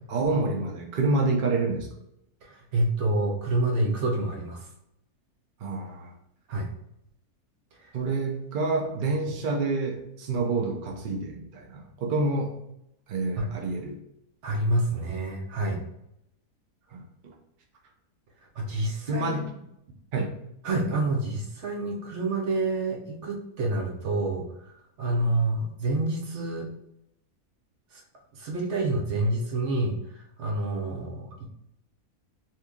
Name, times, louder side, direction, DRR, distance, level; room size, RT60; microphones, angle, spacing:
voice 1, 0.1-1.9 5.6-6.2 7.9-12.6 13.1-14.0 16.9-17.0 19.1-19.5 20.1-20.3, right 3 dB, 75° right, 1 dB, 0.4 m, -28 dB
voice 2, 2.4-4.7 6.5-6.7 7.8-7.9 13.4-13.5 14.4-15.8 18.5-19.4 20.6-24.7 25.0-26.7 27.9-28.0 28.3-31.4, right 2 dB, 55° right, 0 dB, 0.9 m, -28 dB
2.9 x 2.7 x 3.5 m, 0.79 s
omnidirectional pair, 1.6 m